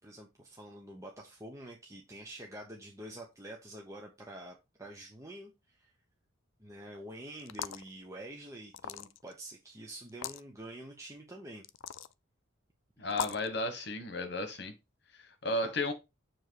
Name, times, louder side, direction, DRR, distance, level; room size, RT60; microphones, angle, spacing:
voice 1, 0.0-5.9 6.6-11.6 13.0-13.5 15.6-15.7, right 1 dB, 15° right, 0.8 m, -47 dB
sound 1, 7.4-7.9 8.7-9.3 10.1-10.4 11.6-12.1 13.1-13.5, left 9 dB, 75° left, 0.4 m, -38 dB
voice 2, 13.0-14.7 15.4-15.9, left 2 dB, 55° left, 1.3 m, -33 dB
7.0 x 3.1 x 4.7 m
head